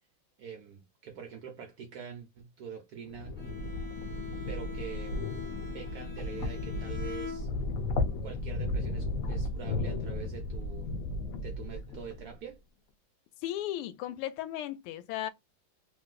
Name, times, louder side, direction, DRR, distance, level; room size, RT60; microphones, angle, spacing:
voice 1, 0.4-3.4 4.5-5.3 5.7-7.5 8.2-11.0 11.4-12.6, right 7 dB, 65° right, 0.9 m, -45 dB
sound 1, 3.1-12.3, left 2 dB, 60° left, 0.9 m, -34 dB
Bowed string instrument, 3.4-8.0, left 5 dB, 15° left, 0.3 m, -44 dB
voice 2, 13.4-15.3, left 12 dB, 90° left, 1.5 m, -35 dB
3.0 x 3.0 x 2.4 m
omnidirectional pair, 2.4 m